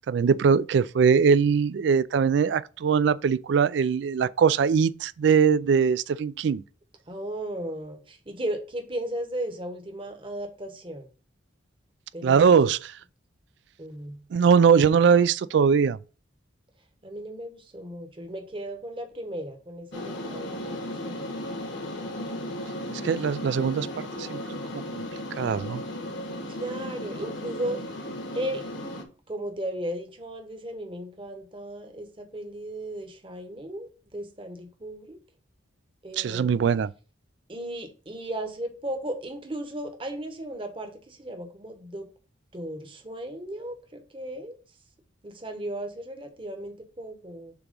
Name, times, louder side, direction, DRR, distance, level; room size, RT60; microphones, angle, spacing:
voice 1, 0.0-6.6 12.2-12.9 14.3-16.0 22.9-23.9 24.2-25.0 25.4-25.8 36.2-36.9, right 6 dB, 60° right, 0.3 m, -21 dB
voice 2, 7.1-11.1 12.1-12.6 13.8-14.2 17.0-21.3 26.5-27.8 28.3-28.6 29.3-35.2 36.0-36.6 37.5-42.1 42.5-44.6 45.2-47.5, right 1 dB, 25° right, 1.0 m, -36 dB
sound 1, 19.9-29.0, left 1 dB, 70° left, 1.3 m, -35 dB
6.9 x 3.0 x 5.2 m
head